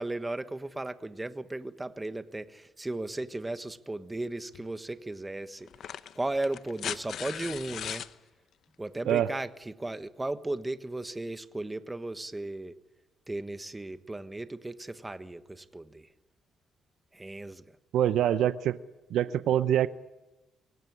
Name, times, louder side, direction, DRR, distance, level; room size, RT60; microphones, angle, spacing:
voice 1, 0.0-5.7 6.1-8.0 8.8-12.7 13.3-16.1 17.1-17.6, right 2 dB, 15° right, 11 dB, 1.3 m, -36 dB
sound 1, 4.5-4.7 5.7-8.1 9.6-9.7, left 9 dB, 70° left, 0.8 m, -38 dB
voice 2, 17.9-18.8 19.1-19.9, right 11 dB, 80° right, 14 dB, 0.7 m, -25 dB
24.0 x 17.0 x 9.8 m, 1.1 s
cardioid pair, 90°, 0 cm